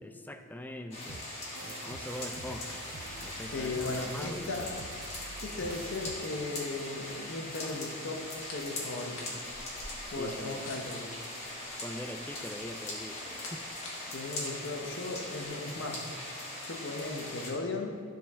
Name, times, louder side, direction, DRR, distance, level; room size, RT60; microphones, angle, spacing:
voice 1, 0.0-1.3 1.6-2.8 3.2-4.5 10.2-10.6 11.8-13.2 13.5-13.7, left 1 dB, 10° left, 7 dB, 0.3 m, -42 dB
sound 1, 0.9-17.5, left 1 dB, 30° left, 1.6 m, -41 dB
sound 2, 1.1-6.2, right 4 dB, 70° right, 0.5 m, -47 dB
voice 2, 3.5-4.7 5.4-9.4 10.1-11.2 14.1-16.1 16.6-18.0, left 2 dB, 60° left, 2 dB, 0.8 m, -37 dB
sound 3, 8.5-15.5, left 2 dB, 80° left, 1.3 m, -51 dB
12.5 x 4.5 x 3.5 m, 2.3 s
head